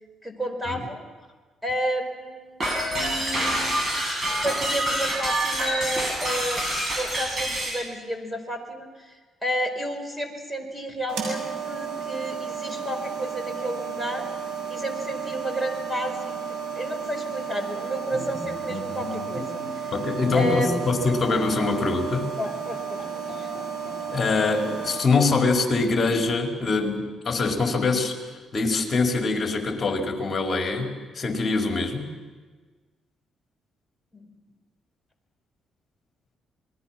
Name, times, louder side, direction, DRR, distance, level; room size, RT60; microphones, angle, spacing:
voice 1, 0.2-1.0 1.6-2.6 2.8-3.8 4.4-6.6 7.0-9.1 9.4-14.3 14.7-16.4 16.7-19.9 20.3-20.7 22.4-23.5 34.1-34.3, right 1 dB, 10° right, 6 dB, 4.9 m, -31 dB
sound 1, 2.6-7.8, right 1 dB, 35° right, 7.8 m, -27 dB
sound 2, 11.1-25.0, right 6 dB, 80° right, 7.3 m, -33 dB
Bowed string instrument, 18.1-21.2 21.5-21.7 22.1-22.2 22.4-24.3 24.6-25.5 26.1-26.7, left 1 dB, 15° left, 4.7 m, -36 dB
voice 2, 19.9-22.3 24.1-28.2 28.5-32.1, left 3 dB, 35° left, 2 dB, 4.7 m, -24 dB
28.5 x 21.5 x 6.1 m, 1.4 s
cardioid pair, 90°, 0 cm